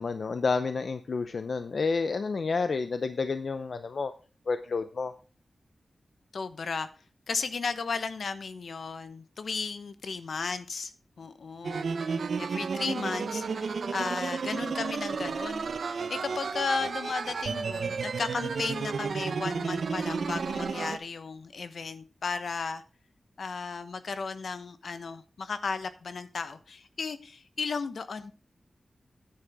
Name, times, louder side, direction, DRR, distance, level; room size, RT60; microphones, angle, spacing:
voice 1, 0.0-4.1 4.5-5.1, left 4 dB, 65° left, 10 dB, 0.6 m, -30 dB
voice 2, 6.3-6.9 7.3-10.9 11.2-22.8 23.4-28.3, left 4 dB, 80° left, 11 dB, 1.0 m, -35 dB
sound 1, 11.6-21.0, right 5 dB, 85° right, 0.7 m, -32 dB
10.0 x 9.7 x 3.5 m, 0.35 s
wide cardioid pair, 135°, 0 cm